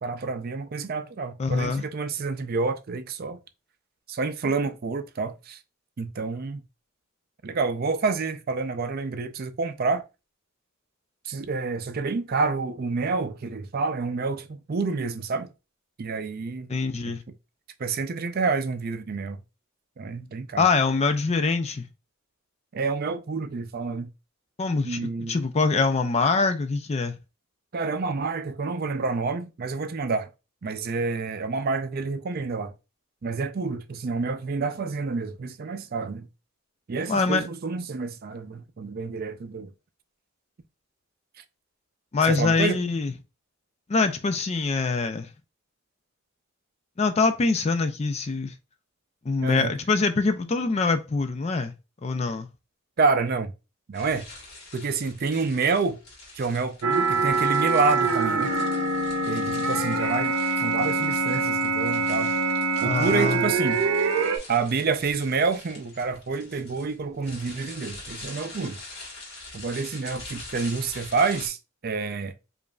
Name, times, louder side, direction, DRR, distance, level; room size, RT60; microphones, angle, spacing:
voice 1, 0.0-3.4 4.1-5.6 6.0-6.6 7.4-10.0 11.3-15.5 16.0-16.7 17.8-19.4 20.0-20.6 22.7-24.1 24.8-25.4 27.7-30.3 30.6-32.7 33.2-36.3 36.9-39.7 42.2-42.8 49.4-49.7 53.0-53.5 53.9-54.3 54.7-56.0 56.4-58.6 59.3-62.3 62.8-63.8 64.5-68.8 69.5-71.6 71.8-72.3, right 4 dB, 45° right, 0.4 m, -28 dB
voice 2, 1.4-1.8 16.7-17.2 20.6-21.9 24.6-25.0 25.3-27.2 37.1-37.4 42.1-43.1 43.9-45.3 47.0-48.5 49.3-51.7 52.0-52.5 62.8-63.5, left 4 dB, 30° left, 0.4 m, -24 dB
sound 1, 53.9-71.5, left 2 dB, 50° left, 1.7 m, -44 dB
sound 2, 56.8-64.4, right 3 dB, 85° right, 0.7 m, -24 dB
5.0 x 2.5 x 2.3 m
head